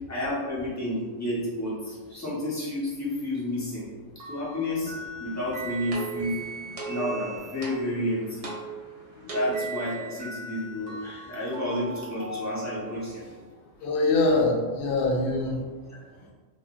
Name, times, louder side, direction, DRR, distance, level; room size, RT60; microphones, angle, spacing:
voice 1, 0.1-3.9 4.3-4.9 5.2-6.3 6.9-8.5 9.3-13.3, left 1 dB, 15° left, -8 dB, 0.7 m, -30 dB
sound 1, 4.2-7.9 9.5-13.3, right 2 dB, 50° right, 1.2 m, -40 dB
sound 2, 5.3-9.9, right 5 dB, 65° right, 0.3 m, -38 dB
voice 2, 13.8-16.3, left 2 dB, 65° left, 0 dB, 0.5 m, -25 dB
2.6 x 2.2 x 3.6 m, 1.4 s
omnidirectional pair, 1.5 m